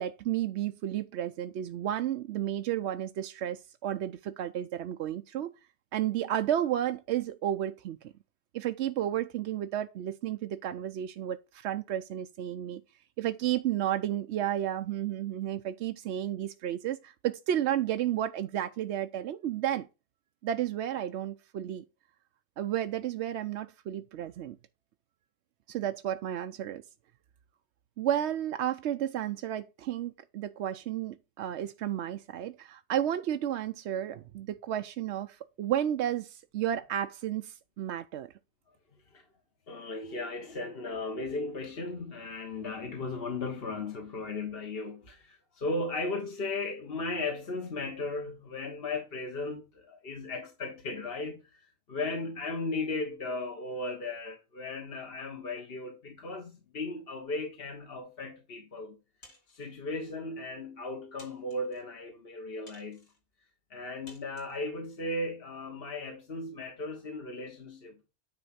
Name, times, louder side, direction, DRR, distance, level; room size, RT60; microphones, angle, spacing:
voice 1, 0.0-5.5 5.9-8.1 8.5-12.8 13.2-19.9 20.4-21.8 22.6-24.6 25.7-26.8 28.0-38.3, right 11 dB, 65° right, 0.8 m, -32 dB
voice 2, 39.7-59.0 59.5-63.1 63.7-68.0, left 2 dB, 50° left, 1.4 m, -36 dB
sound 1, 59.2-59.8 60.5-60.6 61.2-61.8 62.7-63.2 64.1-64.6, left 1 dB, 85° left, 3.3 m, -56 dB
9.7 x 3.6 x 5.7 m
omnidirectional pair, 1.4 m